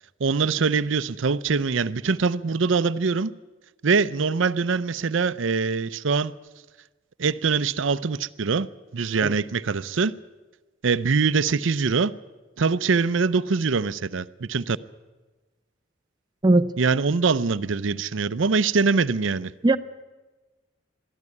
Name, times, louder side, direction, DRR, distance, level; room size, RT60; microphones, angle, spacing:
voice 1, 0.2-3.3 3.8-6.3 7.2-8.7 8.9-10.1 10.8-12.1 12.6-14.8 16.8-19.5, right 4 dB, 80° right, 0.6 m, -23 dB
voice 2, 9.2-9.3 16.4-16.7 19.6-19.8, right 2 dB, 20° right, 0.6 m, -18 dB
23.0 x 13.5 x 9.7 m
head